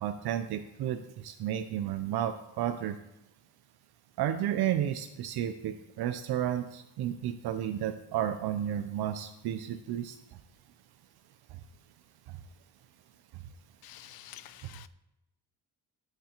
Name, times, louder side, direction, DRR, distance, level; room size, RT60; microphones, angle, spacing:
voice 1, 0.0-2.9 4.2-10.1, right 10 dB, 70° right, 8 dB, 0.5 m, -32 dB
voice 2, 13.8-14.9, left 13 dB, 65° left, 16 dB, 0.5 m, -49 dB
8.0 x 7.5 x 2.9 m, 0.91 s
cardioid pair, 110°, 39 cm